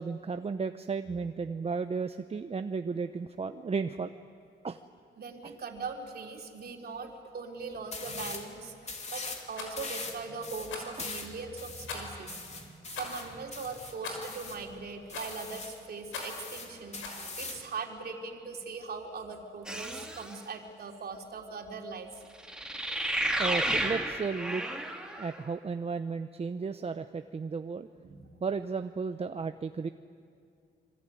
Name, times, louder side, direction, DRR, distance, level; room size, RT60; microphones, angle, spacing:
voice 1, 0.0-4.1 4.6-4.8 5.4-5.5 11.0-11.1 23.4-24.6 25.2-27.9 28.4-29.9, right 5 dB, 30° right, 8 dB, 0.9 m, -34 dB
voice 2, 5.2-8.7 9.1-22.1 28.0-28.3, right 4 dB, 50° right, 2 dB, 3.5 m, -40 dB
sound 1, 7.9-8.5 8.8-9.4 9.8-14.6 15.1-15.8 16.1-17.7, left 3 dB, 35° left, 3.3 m, -41 dB
Rattle, 9.5-9.7 10.7-11.0 11.9-12.2 12.9-13.2 14.0-14.3 15.1-15.4 16.1-16.4 17.0-17.2, left 4 dB, 80° left, 5.8 m, -40 dB
sound 2, 19.7-20.4 22.4-25.4, right 1 dB, 5° right, 2.7 m, -32 dB
25.5 x 23.5 x 9.3 m, 2.3 s
cardioid pair, 90°, 20 cm